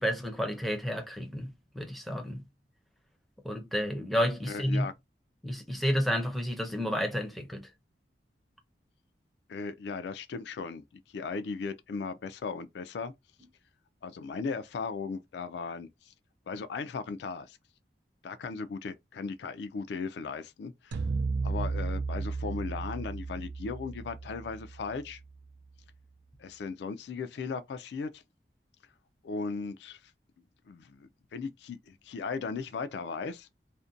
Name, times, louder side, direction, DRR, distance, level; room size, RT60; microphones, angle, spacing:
voice 1, 0.0-2.4 3.4-4.9 5.4-7.6, equal, ahead, 0.5 m, -31 dB
voice 2, 4.5-4.9 9.5-13.1 14.0-16.1 16.5-17.6 18.2-20.9 21.4-25.2 26.4-28.2 29.2-30.0 30.7-33.5, left 4 dB, 75° left, 0.3 m, -37 dB
sound 1, 20.9-25.3, right 4 dB, 75° right, 0.3 m, -34 dB
2.5 x 2.1 x 2.5 m
head